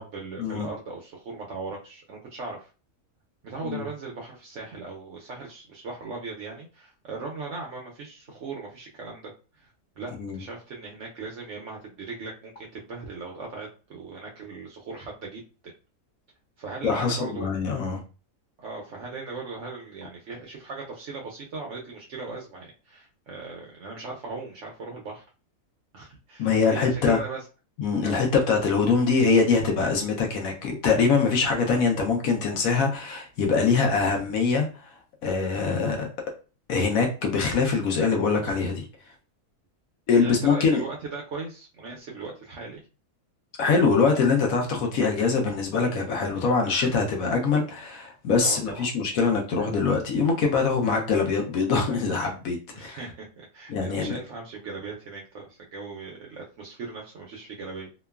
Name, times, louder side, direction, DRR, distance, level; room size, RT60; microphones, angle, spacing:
voice 1, 0.0-2.7 3.4-9.7 10.0-15.4 16.6-17.6 18.6-25.2 25.9-27.4 28.0-28.2 31.7-31.8 33.8-34.0 40.2-42.8 48.4-48.9 52.7-57.9, right 3 dB, 70° right, -1 dB, 0.7 m, -38 dB
voice 2, 16.8-18.0 26.4-27.2 27.8-34.7 35.2-36.1 36.7-38.8 40.1-40.8 43.6-53.0 53.7-54.1, left 4 dB, 70° left, 2 dB, 0.9 m, -23 dB
2.8 x 2.2 x 2.2 m, 0.34 s
omnidirectional pair, 1.7 m